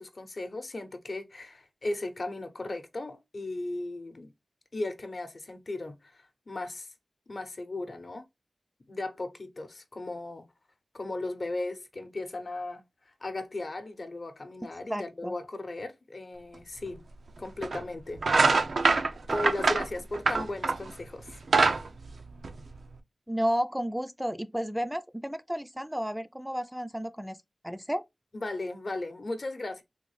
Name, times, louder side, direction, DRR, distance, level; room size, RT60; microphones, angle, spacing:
voice 1, 0.0-4.3 4.7-6.9 7.3-8.2 8.9-10.4 10.9-12.8 13.2-17.0 17.4-18.2 18.9-21.4 28.3-29.8, left 2 dB, 55° left, 0.7 m, -36 dB
voice 2, 14.9-15.3 23.3-27.4 27.6-28.0, equal, 5° right, 0.3 m, -32 dB
sound 1, 16.9-17.0 17.6-17.8 18.2-20.9 21.3-22.9, right 4 dB, 85° right, 0.4 m, -24 dB
3.6 x 2.3 x 3.1 m
wide cardioid pair, 65°, 0 cm